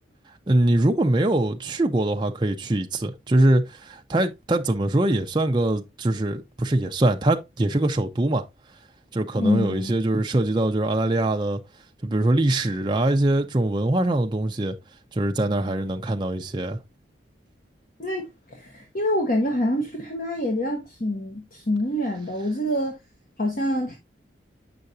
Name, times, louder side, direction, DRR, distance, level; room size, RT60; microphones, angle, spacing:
voice 1, 0.5-8.4 9.1-11.6 12.0-14.8 15.1-16.8, right 1 dB, 25° right, 0.5 m, -23 dB
voice 2, 9.4-9.9 18.0-23.0 23.4-24.0, left 1 dB, 45° left, 1.1 m, -26 dB
7.8 x 5.6 x 2.6 m
head